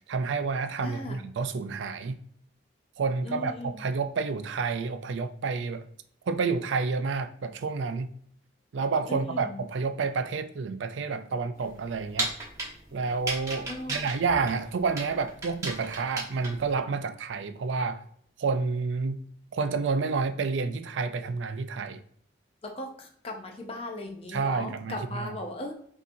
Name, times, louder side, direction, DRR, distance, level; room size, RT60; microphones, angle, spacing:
voice 1, 0.1-2.2 3.0-5.8 6.3-8.1 8.7-12.3 12.9-18.0 18.4-19.2 19.5-22.0 24.3-25.4, right 4 dB, 80° right, 0.4 m, -29 dB
voice 2, 0.8-1.2 3.2-3.8 9.1-9.6 13.7-14.1 22.6-25.7, left 1 dB, 30° left, 0.4 m, -37 dB
sound 1, 11.6-16.7, right 2 dB, 20° right, 0.9 m, -35 dB
5.5 x 2.8 x 2.6 m
head